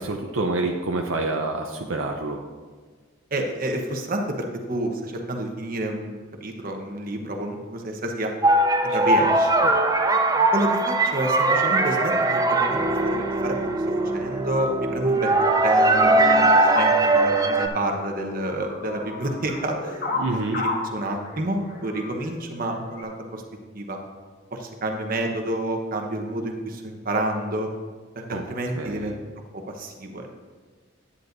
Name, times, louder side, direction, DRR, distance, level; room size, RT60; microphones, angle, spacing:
voice 1, 0.0-2.4 8.9-9.3 9.6-9.7 20.2-20.6 28.3-28.4 28.8-29.1, right 2 dB, 75° right, 2 dB, 0.7 m, -28 dB
voice 2, 3.3-8.3 8.8-9.5 10.5-13.7 14.0-15.3 15.6-20.0 20.3-23.4 23.7-24.0 24.5-27.7 28.1-29.1 29.5-30.3, right 1 dB, 45° right, 3 dB, 1.1 m, -29 dB
sound 1, 8.4-17.7, right 2 dB, 20° right, 0.5 m, -20 dB
sound 2, 14.0-23.0, left 2 dB, 55° left, 1.7 m, -32 dB
10.5 x 9.8 x 2.7 m, 1.5 s
head